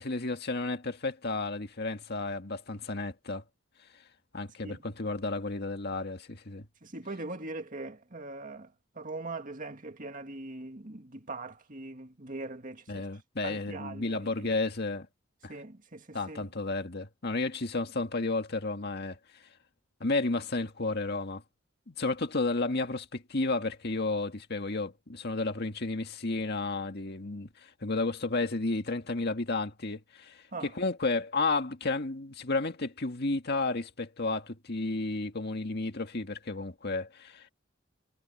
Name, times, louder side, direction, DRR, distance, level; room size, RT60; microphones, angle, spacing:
voice 1, 0.0-3.4 4.3-6.7 12.9-15.1 15.4-15.6 16.1-19.2 20.0-21.4 21.9-37.5, left 3 dB, 55° left, 1.9 m, -32 dB
voice 2, 6.8-13.1 13.4-14.3 15.5-16.5 30.5-30.7, right 2 dB, 40° right, 2.1 m, -41 dB
head